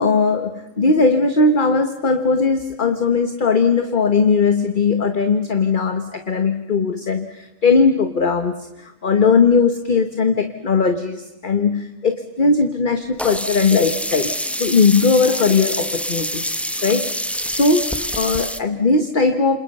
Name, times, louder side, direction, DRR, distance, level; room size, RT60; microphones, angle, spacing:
voice 1, 0.0-16.5 16.8-17.1 17.5-19.6, left 4 dB, 40° left, 8 dB, 1.4 m, -18 dB
Sink (filling or washing), 13.2-18.6, equal, ahead, 1.0 m, -26 dB
29.0 x 27.5 x 5.5 m, 0.97 s
omnidirectional pair, 1.4 m